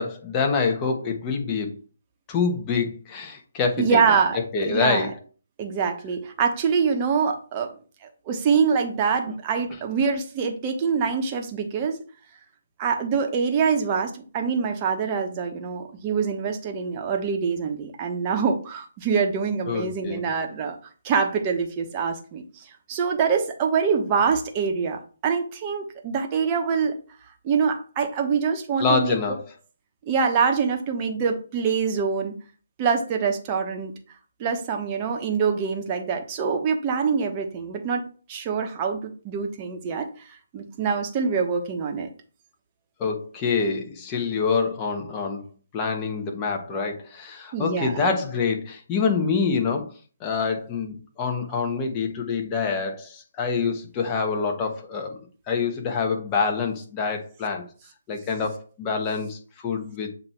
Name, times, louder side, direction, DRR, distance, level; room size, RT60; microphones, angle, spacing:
voice 1, 0.0-1.7 2.3-4.0 4.5-5.1 19.7-20.2 28.8-29.4 43.0-45.4 45.7-49.9 50.2-55.2 55.5-57.6 58.1-60.1, left 5 dB, 20° left, 2 dB, 1.2 m, -26 dB
voice 2, 3.8-4.4 4.6-5.1 5.6-7.7 8.3-12.0 12.8-20.8 21.0-27.0 27.4-29.2 30.1-32.3 32.8-33.9 34.4-38.0 38.3-40.1 40.5-42.1 47.5-48.1, right 6 dB, 25° right, 3 dB, 1.1 m, -25 dB
7.6 x 3.0 x 4.4 m, 0.39 s
figure-of-eight pair, 145°, 0 cm